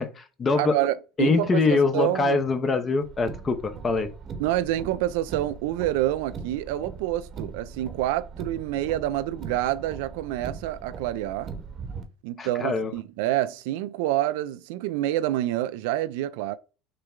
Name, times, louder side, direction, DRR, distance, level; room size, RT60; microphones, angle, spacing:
voice 1, 0.0-0.7 1.2-4.1 12.4-12.9, left 4 dB, 30° left, 0.9 m, -24 dB
voice 2, 0.6-2.4 4.4-11.5 12.2-16.6, right 14 dB, 75° right, 0.4 m, -27 dB
Car, 3.0-12.0, right 5 dB, 40° right, 1.0 m, -40 dB
6.5 x 2.2 x 3.7 m
hypercardioid pair, 85°, 0 cm